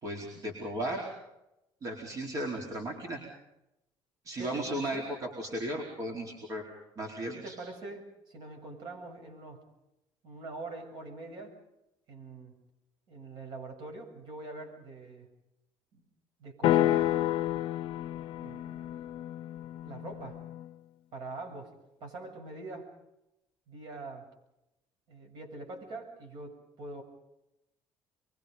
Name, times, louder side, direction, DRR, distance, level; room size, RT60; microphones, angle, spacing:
voice 1, 0.0-1.1 1.8-3.2 4.2-6.6 7.0-7.6, right 1 dB, 35° right, 0 dB, 4.6 m, -35 dB
voice 2, 4.4-5.1 6.1-6.2 7.3-9.6 10.2-11.6 12.1-12.5 13.1-15.3 15.9-16.0 16.4-17.2 18.4-19.1 19.8-20.4 21.1-21.7 22.0-22.9 23.7-24.3 25.1-27.0, right 2 dB, 55° right, 4 dB, 7.6 m, -44 dB
sound 1, 16.6-20.7, left 13 dB, 60° left, 0.8 m, -30 dB
27.0 x 23.5 x 5.4 m, 0.88 s
cardioid pair, 150°, 9 cm